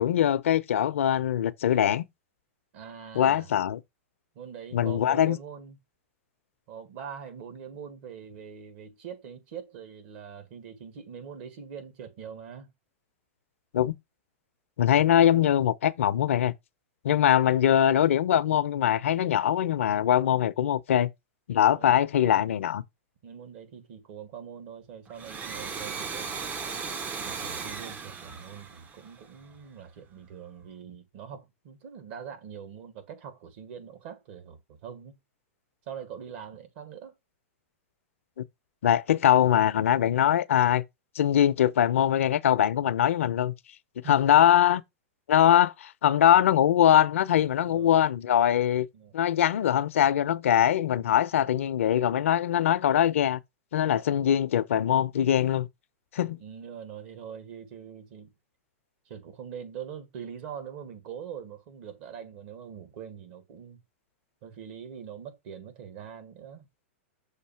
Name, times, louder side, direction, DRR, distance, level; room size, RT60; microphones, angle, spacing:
voice 1, 0.0-2.1 3.1-3.8 4.7-5.4 13.7-13.9 14.8-16.5 17.0-21.1 21.5-22.8 38.8-40.8 41.1-43.5 44.1-44.8 45.3-48.9 49.1-53.4 53.7-55.7 56.1-56.4, left 10 dB, 80° left, 0.6 m, -22 dB
voice 2, 2.7-3.5 4.4-5.8 6.7-12.7 21.5-21.9 23.2-26.4 27.2-35.2 35.9-37.1 44.0-44.4 47.6-48.0 48.9-49.2 56.4-58.3 59.1-63.8 64.4-66.7, right 8 dB, 55° right, 1.8 m, -43 dB
Domestic sounds home sounds, 25.1-29.6, right 5 dB, 20° right, 0.6 m, -37 dB
6.5 x 2.7 x 5.6 m
hypercardioid pair, 130°, 7 cm